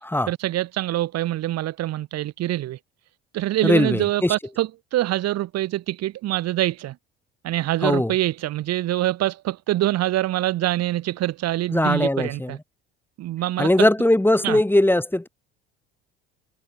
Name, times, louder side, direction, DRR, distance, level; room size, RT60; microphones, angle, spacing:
voice 1, 0.3-2.8 3.3-7.0 7.4-12.6 13.2-13.7 14.4-14.6, right 14 dB, 60° right, 5.9 m, -25 dB
voice 2, 3.6-4.3 7.8-8.1 11.7-12.6 13.6-15.3, left 1 dB, 5° left, 7.4 m, -20 dB
hypercardioid pair, 70°, 29 cm